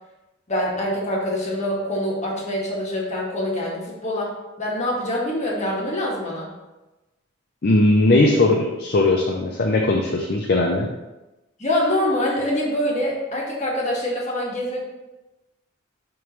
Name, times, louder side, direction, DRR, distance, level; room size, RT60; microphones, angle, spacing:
voice 1, 0.5-4.3 4.6-6.5 11.6-14.9, left 1 dB, 35° left, -3 dB, 1.7 m, -25 dB
voice 2, 7.6-10.9, left 2 dB, 50° left, 0 dB, 0.6 m, -19 dB
11.0 x 3.7 x 3.2 m, 1.0 s
head